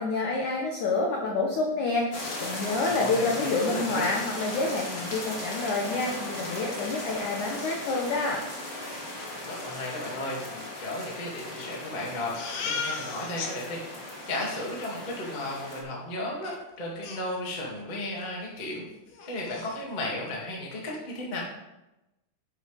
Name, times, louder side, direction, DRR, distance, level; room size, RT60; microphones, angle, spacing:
voice 1, 0.0-8.4, left 3 dB, 85° left, 0 dB, 1.7 m, -28 dB
sound 1, 2.1-15.8, left 1 dB, 55° left, 1.0 m, -37 dB
voice 2, 2.9-4.1 9.5-13.8 14.3-18.9 19.2-21.4, left 1 dB, 35° left, -3 dB, 0.6 m, -34 dB
Crying sobbing, 12.3-13.5 13.9-14.0 14.2-14.6 16.4-16.5 17.0-17.8 18.2-18.3 18.7-18.8 19.1-19.8, left 5 dB, 70° left, 1.9 m, -36 dB
10.5 x 8.7 x 3.5 m, 0.96 s
omnidirectional pair, 5.2 m